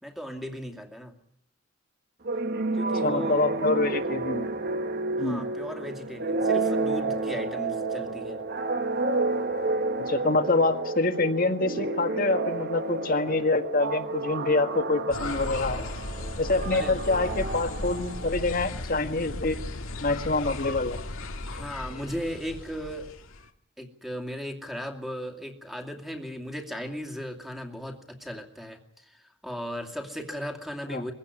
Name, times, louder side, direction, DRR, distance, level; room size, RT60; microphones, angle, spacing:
voice 1, 0.0-1.2 2.7-3.5 5.2-8.4 16.7-17.0 21.5-23.1 23.8-31.1, equal, ahead, 4 dB, 2.4 m, -37 dB
sound 1, 2.3-18.6, right 3 dB, 50° right, 1.5 m, -30 dB
voice 2, 3.0-4.5 5.2-5.4 10.0-15.8 16.4-19.6 20.0-21.0 30.9-31.0, left 2 dB, 45° left, 7 dB, 1.7 m, -26 dB
sound 2, 15.1-23.5, left 2 dB, 85° left, 1.9 m, -36 dB
23.0 x 16.0 x 9.8 m, 0.73 s
head